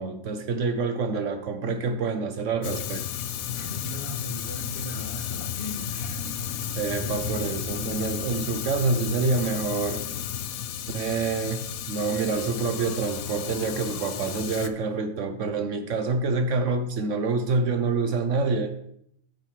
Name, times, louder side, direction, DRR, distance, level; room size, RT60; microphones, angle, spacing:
voice 1, 0.0-3.0 6.7-10.0 10.9-18.7, right 4 dB, 65° right, 1.0 m, -27 dB
Fire, 2.6-14.7, left 10 dB, 85° left, 1.1 m, -33 dB
voice 2, 3.5-6.0, left 1 dB, 40° left, 2.2 m, -38 dB
sound 1, 5.5-8.6 11.1-11.2 11.8-14.9 17.5-17.6, equal, 20° left, 3.3 m, -42 dB
9.1 x 9.1 x 3.3 m
omnidirectional pair, 1.5 m